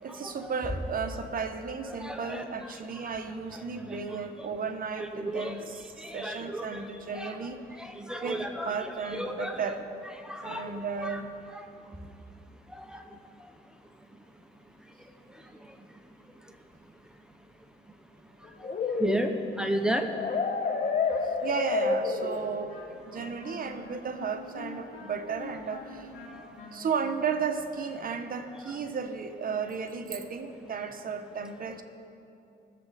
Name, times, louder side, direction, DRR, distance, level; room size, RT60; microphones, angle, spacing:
voice 1, 0.0-7.6 8.2-9.8 10.4-11.3 21.2-22.7 23.1-26.1 26.7-31.8, right 5 dB, 45° right, 7 dB, 1.0 m, -34 dB
voice 2, 1.9-2.4 5.2-5.6 6.0-6.9 7.1-7.4 7.8-9.6 10.2-10.7 11.0-11.2 12.7-13.5 15.6-15.8 18.4-18.7 19.0-20.1, right 1 dB, 5° right, 4 dB, 0.9 m, -33 dB
sound 1, 18.6-22.7, left 4 dB, 40° left, 1.0 m, -29 dB
Wind instrument woodwind instrument, 22.3-27.9, left 4 dB, 85° left, 3.1 m, -46 dB
20.0 x 7.4 x 4.2 m, 2.7 s
cardioid pair, 90°, 20 cm